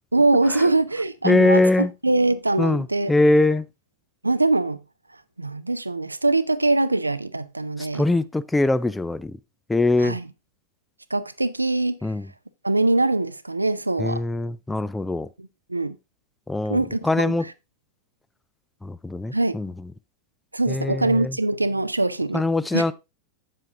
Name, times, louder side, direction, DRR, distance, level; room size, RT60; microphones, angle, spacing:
voice 1, 0.1-3.1 4.2-4.8 5.4-8.0 10.0-10.3 11.1-12.0 12.6-14.2 15.4-16.0 16.7-17.4 19.3-19.6 20.5-22.4 22.7-22.8, right 2 dB, 85° right, 0.5 m, -23 dB
voice 2, 1.2-1.9 2.6-3.6 7.9-9.4 9.7-10.2 12.0-12.3 14.0-15.3 16.5-17.4 18.8-19.7 20.7-21.4 22.3-22.9, left 2 dB, 10° left, 0.4 m, -22 dB
8.0 x 7.5 x 3.6 m
figure-of-eight pair, 90°, 0 cm